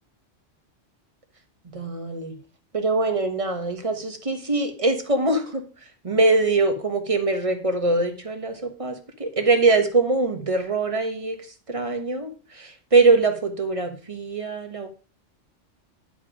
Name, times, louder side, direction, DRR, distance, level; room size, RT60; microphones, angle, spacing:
voice 1, 1.7-2.3 2.7-5.6 6.0-14.9, right 3 dB, 30° right, 6 dB, 1.4 m, -23 dB
11.0 x 5.2 x 5.0 m, 0.37 s
omnidirectional pair, 1.2 m